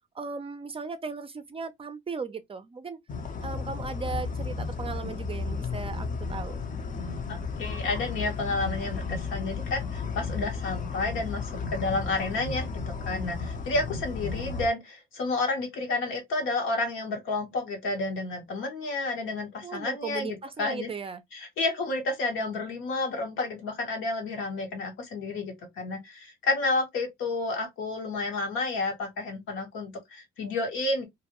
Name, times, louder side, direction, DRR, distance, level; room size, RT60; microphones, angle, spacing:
voice 1, 0.2-3.0 3.4-6.6 19.6-21.2, right 4 dB, 30° right, 0.4 m, -37 dB
sound 1, 3.1-14.7, left 4 dB, 40° left, 0.6 m, -33 dB
voice 2, 7.3-20.9 21.3-31.0, left 2 dB, 85° left, 1.2 m, -31 dB
2.6 x 2.1 x 2.8 m
cardioid pair, 90°, 20 cm